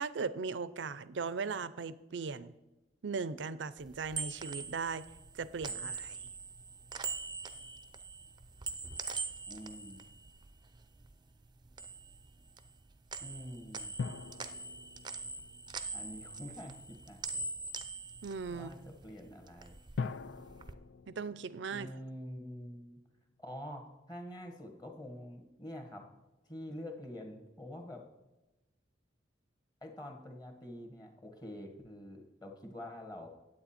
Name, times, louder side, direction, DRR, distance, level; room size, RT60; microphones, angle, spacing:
voice 1, 0.0-2.5 3.0-5.1 5.3-6.2 18.2-18.7 21.1-21.9, right 5 dB, 85° right, 16 dB, 0.5 m, -38 dB
sound 1, 3.8-11.1 11.4-12.8 13.1-19.1 19.4-20.7, right 4 dB, 25° right, 0.5 m, -43 dB
voice 2, 9.4-10.0 13.2-13.9 15.9-17.4 18.5-19.8 21.7-23.0 23.4-26.1 26.4-28.0 29.8-33.3, equal, 20° left, 4 dB, 1.5 m, -46 dB
sound 2, 14.0-16.6 20.0-22.6 22.8-22.9, left 5 dB, 80° left, 0.4 m, -43 dB
9.5 x 8.4 x 4.3 m, 1.0 s
head